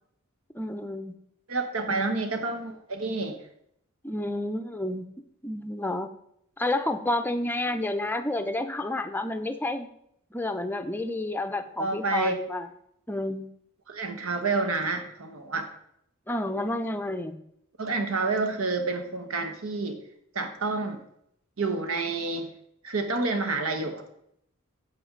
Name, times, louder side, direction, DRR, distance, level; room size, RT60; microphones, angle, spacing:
voice 1, 0.5-1.2 1.9-2.3 4.0-5.0 5.4-6.1 6.6-9.9 10.3-12.7 13.1-13.5 16.3-17.4, left 1 dB, 10° left, 8 dB, 0.5 m, -30 dB
voice 2, 1.5-3.4 11.8-12.4 13.9-15.7 17.8-20.0 20.3-21.0 21.6-22.5 22.8-24.0, right 3 dB, 80° right, 7 dB, 1.2 m, -29 dB
8.4 x 7.8 x 3.7 m, 0.73 s
head